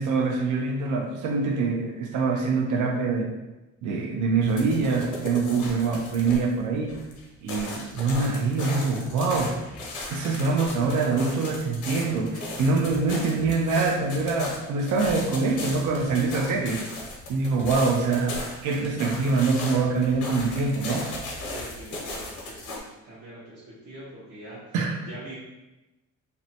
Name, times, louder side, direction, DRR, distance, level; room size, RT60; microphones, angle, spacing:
voice 1, 0.0-3.3 3.8-7.0 7.4-9.6 10.1-16.8 17.3-21.1 24.7-25.0, right 4 dB, 75° right, 3 dB, 0.5 m, -24 dB
sound 1, 4.4-6.6 6.9-22.8, left 2 dB, 80° left, 0.7 m, -37 dB
voice 2, 7.5-7.8 21.4-24.8 25.0-25.4, right 1 dB, 55° right, -10 dB, 0.9 m, -44 dB
2.7 x 2.1 x 2.7 m, 1.0 s
cardioid pair, 90°, 30 cm